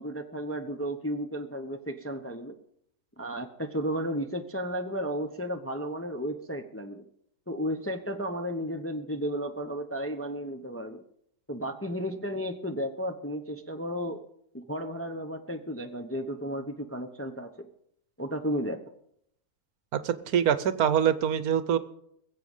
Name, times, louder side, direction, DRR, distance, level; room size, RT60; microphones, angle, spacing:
voice 1, 0.0-2.6 3.2-7.0 7.5-11.0 11.5-14.2 14.5-17.7 18.2-18.8, equal, 15° left, 5 dB, 0.6 m, -33 dB
voice 2, 19.9-21.8, right 9 dB, 75° right, 14 dB, 1.2 m, -24 dB
21.5 x 7.7 x 5.5 m, 0.72 s
omnidirectional pair, 1.6 m